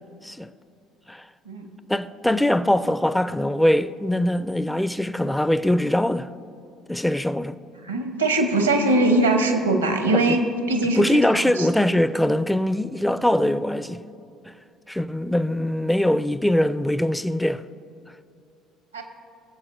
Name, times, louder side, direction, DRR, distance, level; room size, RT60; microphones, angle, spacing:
voice 1, 1.9-6.3 6.9-7.6 10.1-10.4 10.9-14.0 14.9-17.6, left 1 dB, 5° left, 0.4 m, -22 dB
voice 2, 7.8-11.2 11.6-11.7 18.9-19.0, right 2 dB, 85° right, 0.9 m, -21 dB
22.5 x 7.6 x 2.6 m
figure-of-eight pair, 55°, 0 cm